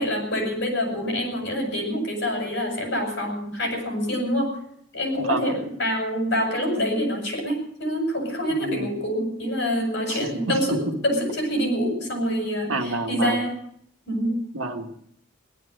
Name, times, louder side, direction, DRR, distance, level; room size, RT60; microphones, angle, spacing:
voice 1, 0.0-4.6 4.9-13.5 14.1-14.4, equal, 55° left, 2 dB, 7.4 m, -26 dB
voice 2, 5.2-5.5 8.5-8.9 10.1-10.8 12.7-13.4 14.5-15.0, right 2 dB, 85° right, 5 dB, 1.7 m, -29 dB
17.5 x 12.5 x 6.7 m, 0.71 s
head